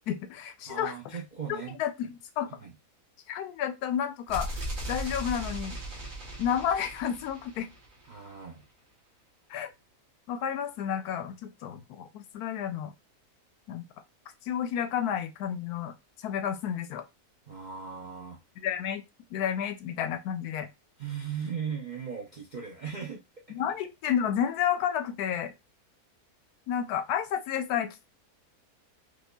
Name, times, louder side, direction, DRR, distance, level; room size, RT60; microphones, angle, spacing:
voice 1, 0.1-0.9 1.8-2.5 3.3-4.6 4.9-5.8 6.4-7.7 9.5-9.7 10.3-12.9 13.7-13.8 14.4-17.0 18.6-19.0 19.3-20.7 23.5-25.5 26.7-28.1, left 9 dB, 85° left, 1.1 m, -31 dB
voice 2, 0.7-1.8 2.6-2.8 8.0-8.6 17.5-18.4 21.0-23.6, right 7 dB, 65° right, 0.4 m, -38 dB
sound 1, 4.3-8.2, right 1 dB, 40° right, 1.1 m, -37 dB
5.0 x 2.3 x 2.2 m
omnidirectional pair, 1.6 m